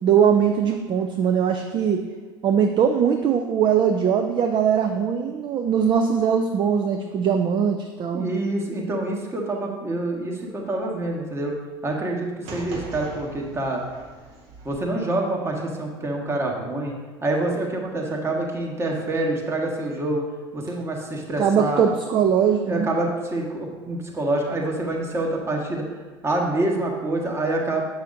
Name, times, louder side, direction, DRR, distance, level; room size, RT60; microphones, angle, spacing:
voice 1, 0.0-2.0 2.4-8.3 21.4-22.9, right 7 dB, 40° right, 6 dB, 0.5 m, -21 dB
voice 2, 8.1-11.5 11.8-13.8 14.6-16.9 17.2-20.2 20.5-21.8 22.7-25.8 26.2-27.8, right 2 dB, 20° right, -1 dB, 1.3 m, -26 dB
sound 1, 12.4-14.7, right 2 dB, 55° right, 1.5 m, -40 dB
7.1 x 5.6 x 2.6 m, 1.4 s
hypercardioid pair, 75°, 13 cm